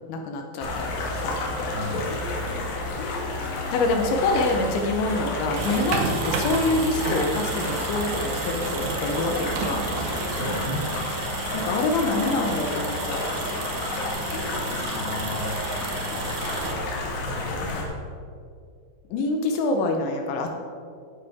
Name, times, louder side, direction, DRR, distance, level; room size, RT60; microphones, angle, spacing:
voice 1, 0.1-1.4 3.7-9.9 11.5-13.2 17.5-17.7 19.1-20.5, left 2 dB, 75° left, 3 dB, 3.1 m, -26 dB
sound 1, 0.6-17.8, left 2 dB, 60° left, 2.9 m, -30 dB
voice 2, 1.7-2.1 10.3-10.9 14.8-15.7 17.2-17.7, equal, 60° right, -7 dB, 5.3 m, -34 dB
sound 2, 5.4-17.3, right 6 dB, 90° right, 1.9 m, -33 dB
16.5 x 9.1 x 3.5 m, 2.3 s
omnidirectional pair, 5.6 m